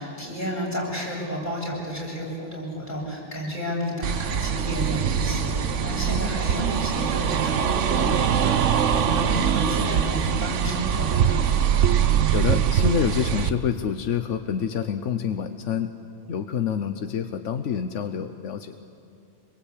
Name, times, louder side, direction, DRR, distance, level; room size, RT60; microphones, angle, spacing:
voice 1, 0.0-11.4, equal, 40° left, -4 dB, 7.8 m, -31 dB
sound 1, 4.0-13.5, right 8 dB, 85° right, 1.2 m, -23 dB
voice 2, 12.3-15.9 16.3-18.8, left 7 dB, 90° left, 8 dB, 1.2 m, -27 dB
25.5 x 22.5 x 8.5 m, 2.4 s
omnidirectional pair, 1.2 m